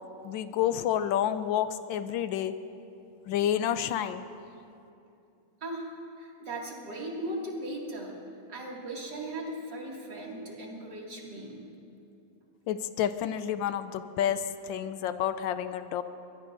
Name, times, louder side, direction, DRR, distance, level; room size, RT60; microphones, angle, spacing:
voice 1, 0.2-2.6 3.3-4.2 12.7-16.0, left 10 dB, 75° left, 11 dB, 1.2 m, -29 dB
voice 2, 5.6-5.9 6.2-8.1 8.5-11.6, right 1 dB, 55° right, -3 dB, 2.9 m, -38 dB
23.0 x 22.0 x 2.6 m, 2.7 s
omnidirectional pair, 2.4 m